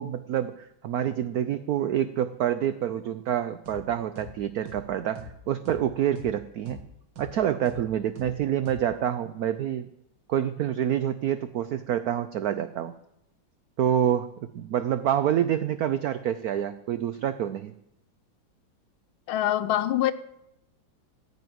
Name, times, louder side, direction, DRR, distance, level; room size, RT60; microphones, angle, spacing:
voice 1, 0.0-6.8 7.2-9.9 10.3-12.9 13.8-14.3 14.6-17.7, right 10 dB, 80° right, 0.8 m, -27 dB
sound 1, 3.7-3.8 4.2-4.3 4.7-4.8 5.2-5.3 5.7-5.8 6.2-6.3 6.7-6.8 7.2-7.3 7.7-7.8 8.2-8.3 8.7-8.8, right 1 dB, 65° right, 2.1 m, -41 dB
voice 2, 19.3-20.1, left 13 dB, 85° left, 1.5 m, -24 dB
15.0 x 5.4 x 9.3 m
omnidirectional pair, 2.2 m